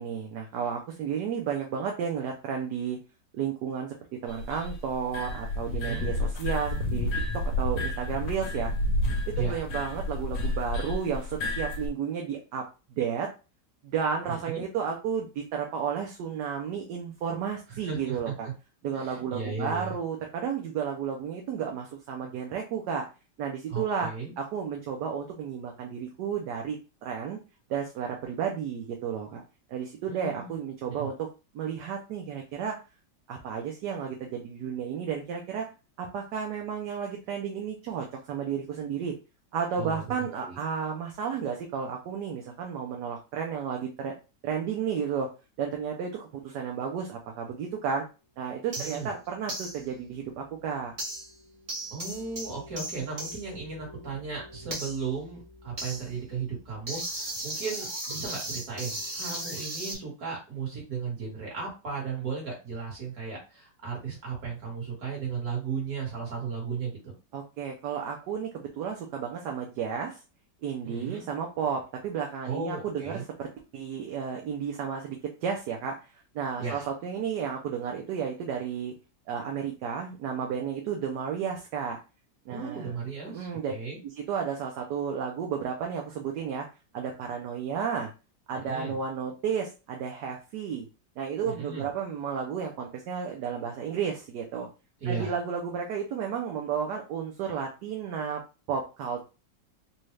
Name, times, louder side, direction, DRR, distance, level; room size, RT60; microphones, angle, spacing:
voice 1, 0.0-3.0 3.3-3.9 4.2-7.1 7.6-8.7 9.3-12.7 13.0-13.3 13.8-18.5 18.8-23.1 23.4-24.1 24.4-26.8 27.0-27.4 27.7-29.4 29.7-31.3 31.5-32.8 33.3-35.7 36.0-39.1 39.5-44.1 44.4-45.3 45.6-48.0 48.4-50.9 67.3-70.2 70.6-73.1 73.4-78.9 79.3-82.0 82.5-82.9 83.3-83.7 84.0-86.7 86.9-88.1 88.5-90.9 91.2-94.7 95.0-98.4 98.7-99.2, right 7 dB, 70° right, 1 dB, 1.2 m, -32 dB
sound 1, 4.3-11.9, left 1 dB, 70° left, 1.3 m, -30 dB
voice 2, 5.7-6.1 9.4-9.6 14.3-14.6 17.7-18.5 18.9-20.0 23.7-24.3 30.1-30.6 31.0-31.1 39.8-40.6 48.8-49.1 51.9-67.1 70.8-71.2 72.5-73.2 76.6-76.9 82.5-84.0 88.5-89.0 91.4-91.9 95.0-95.3, right 5 dB, 55° right, -3 dB, 2.1 m, -35 dB
sound 2, 48.7-49.1 49.5-49.8 51.0-51.4 51.7-59.9, right 1 dB, 30° right, 0.6 m, -37 dB
4.2 x 2.3 x 3.2 m, 0.30 s
omnidirectional pair, 1.9 m